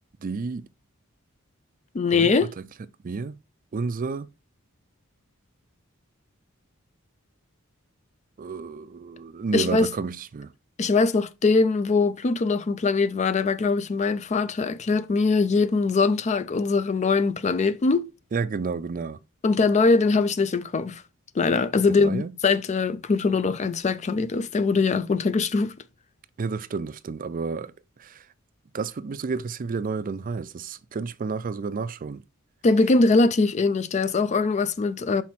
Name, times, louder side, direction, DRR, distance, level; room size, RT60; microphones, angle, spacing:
voice 1, 0.2-0.7 2.1-2.3 3.0-3.4 3.7-4.3 8.4-10.5 18.3-19.2 21.9-22.3 26.4-27.7 28.0-28.2 28.7-32.2, right 4 dB, 40° right, 0.4 m, -31 dB
voice 2, 1.9-2.5 9.5-9.9 10.8-18.1 19.4-21.0 21.4-25.7 32.6-35.2, left 4 dB, 35° left, 0.4 m, -22 dB
5.8 x 4.2 x 4.5 m
head